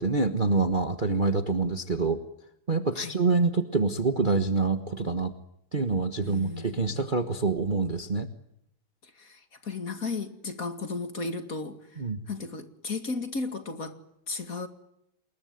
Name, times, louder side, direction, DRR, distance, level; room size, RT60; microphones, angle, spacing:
voice 1, 0.0-2.2 2.7-5.3 5.7-8.3 12.0-12.2, right 3 dB, 25° right, 1.3 m, -26 dB
voice 2, 6.2-7.0 9.2-11.8 12.3-13.9 14.3-14.7, left 3 dB, 40° left, 2.6 m, -34 dB
27.5 x 21.5 x 9.4 m
omnidirectional pair, 2.3 m